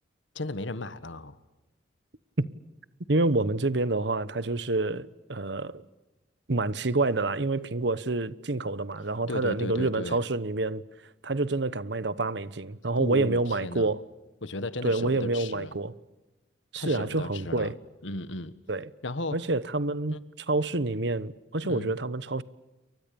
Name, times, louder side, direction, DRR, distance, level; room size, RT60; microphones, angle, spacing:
voice 1, 0.3-1.4 9.3-10.2 13.0-13.9 14.4-15.7 16.7-17.7 18.0-18.5 19.0-19.4 20.1-20.2 21.7-21.9, left 2 dB, 80° left, 1.6 m, -35 dB
voice 2, 3.1-5.8 6.5-10.8 11.2-14.0 14.8-15.9 16.7-17.7 18.7-18.9 19.3-22.4, right 2 dB, 65° right, 1.1 m, -28 dB
29.0 x 24.0 x 7.0 m
head